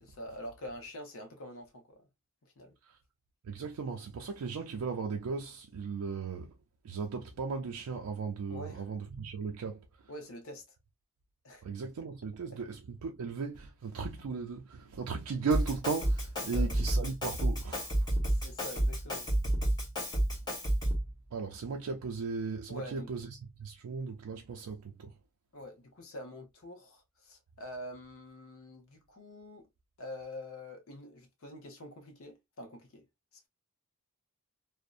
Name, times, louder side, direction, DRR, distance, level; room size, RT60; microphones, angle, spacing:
voice 1, 0.0-2.1 2.4-2.7 8.5-8.9 10.1-10.6 11.4-11.6 16.5-16.7 18.3-19.3 22.7-23.1 25.5-29.7 30.0-33.1 33.3-33.5, left 1 dB, 65° left, 0.7 m, -46 dB
voice 2, 3.4-6.5 6.8-10.1 11.6-18.1 21.3-25.1, right 5 dB, 90° right, 0.4 m, -37 dB
Drum kit, 15.5-21.1, right 1 dB, 20° left, 1.1 m, -30 dB
2.6 x 2.0 x 2.3 m
head